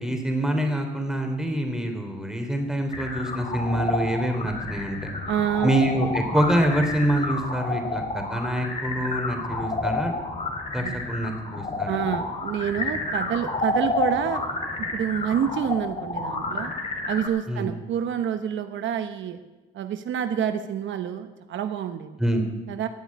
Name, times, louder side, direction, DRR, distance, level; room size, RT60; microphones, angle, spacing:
voice 1, 0.0-5.0 5.6-10.1 10.7-12.0 17.5-17.7 22.2-22.5, right 1 dB, 5° right, 4 dB, 3.4 m, -26 dB
sound 1, 2.9-17.3, left 3 dB, 35° left, 3.0 m, -30 dB
voice 2, 5.3-5.7 10.8-11.0 11.9-14.4 14.8-16.7 17.1-19.4 19.7-22.2 22.7-22.9, right 9 dB, 70° right, 8 dB, 1.1 m, -28 dB
16.0 x 7.9 x 9.7 m, 1.1 s
cardioid pair, 90°, 20 cm